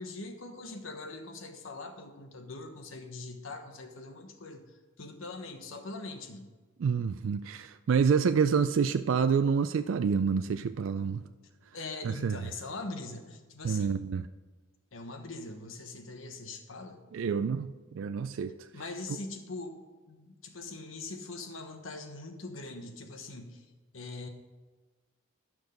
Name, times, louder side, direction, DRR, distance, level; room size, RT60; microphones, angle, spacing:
voice 1, 0.0-6.5 11.7-14.0 14.9-17.0 18.7-19.8 20.1-23.7 23.9-24.3, left 3 dB, 85° left, 1.1 m, -42 dB
voice 2, 6.8-11.2 12.0-12.4 13.6-14.2 17.1-18.6, right 6 dB, 80° right, 0.3 m, -28 dB
11.5 x 6.2 x 5.2 m
head